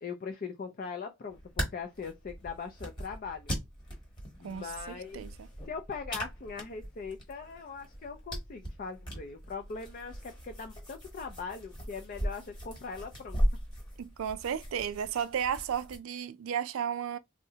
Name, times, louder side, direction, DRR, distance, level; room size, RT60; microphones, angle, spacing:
voice 1, 0.0-3.6 4.4-5.3 5.7-13.4, left 5 dB, 40° left, 0.4 m, -41 dB
sound 1, 1.3-16.0, equal, 20° left, 1.2 m, -38 dB
voice 2, 4.4-5.3 14.0-17.2, right 8 dB, 65° right, 0.3 m, -34 dB
3.7 x 2.0 x 2.7 m
head